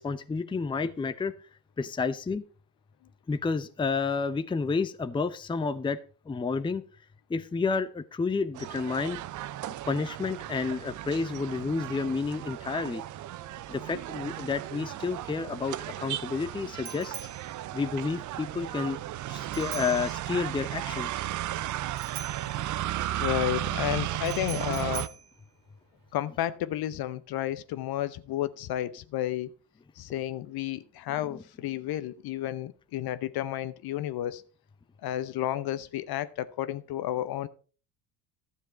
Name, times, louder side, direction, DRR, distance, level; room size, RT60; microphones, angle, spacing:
voice 1, 0.0-1.3 1.8-2.4 3.3-6.0 6.3-6.8 7.3-9.2 9.9-13.0 13.7-17.1 17.7-19.0 19.3-21.2, left 4 dB, 10° left, 0.6 m, -30 dB
sound 1, 8.5-25.1, right 13 dB, 40° right, 0.5 m, -35 dB
Bicycle bell, 15.2-26.3, right 9 dB, 60° right, 2.4 m, -46 dB
voice 2, 23.1-25.2 26.1-29.5 30.0-34.4 35.0-37.5, left 13 dB, 50° left, 0.8 m, -32 dB
12.5 x 7.3 x 4.5 m
hypercardioid pair, 65°, 47 cm